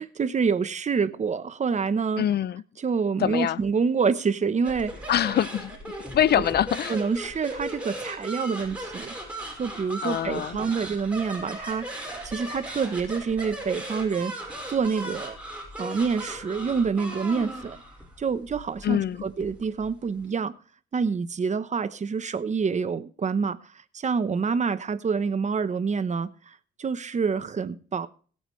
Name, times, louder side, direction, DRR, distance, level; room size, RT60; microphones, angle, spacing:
voice 1, 0.0-2.2 2.8-5.1 6.4-6.5 6.9-9.1 9.6-11.9 12.2-14.3 14.7-15.4 15.8-17.8 18.2-20.5 20.9-23.6 23.9-28.1, right 5 dB, 35° right, 0.9 m, -27 dB
voice 2, 2.2-2.6 3.2-3.6 5.1-5.8 6.1-7.0 10.0-10.6 18.8-19.2, left 10 dB, 55° left, 0.5 m, -24 dB
sound 1, 4.6-20.2, right 1 dB, 5° right, 5.3 m, -37 dB
18.0 x 8.7 x 3.2 m
cardioid pair, 90°, 20 cm